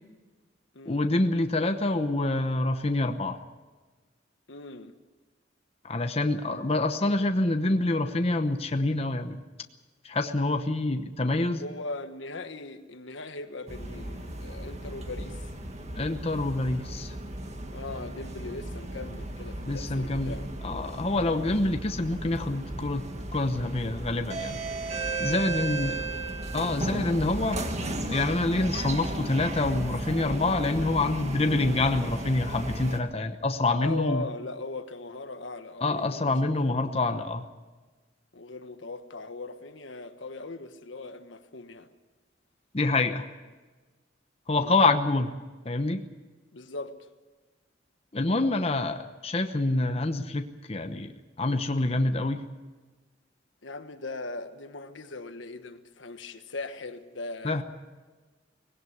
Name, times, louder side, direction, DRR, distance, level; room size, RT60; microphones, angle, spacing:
voice 1, 0.9-3.4 5.8-9.4 10.0-11.6 16.0-17.1 19.7-20.3 20.6-23.0 23.3-24.6 25.2-26.0 26.5-27.6 28.1-34.2 35.8-37.4 42.7-43.3 44.5-45.4 45.6-46.0 48.1-51.1 51.4-52.4 57.4-57.6, left 2 dB, 30° left, 0.9 m, -26 dB
voice 2, 4.5-4.9 6.4-6.8 11.5-15.4 17.7-20.5 25.1-26.1 33.8-37.0 38.3-41.9 44.6-44.8 46.5-47.1 53.6-57.6, left 2 dB, 80° left, 1.4 m, -40 dB
sound 1, 13.7-33.0, right 2 dB, 35° right, 1.8 m, -35 dB
19.5 x 17.5 x 9.5 m
head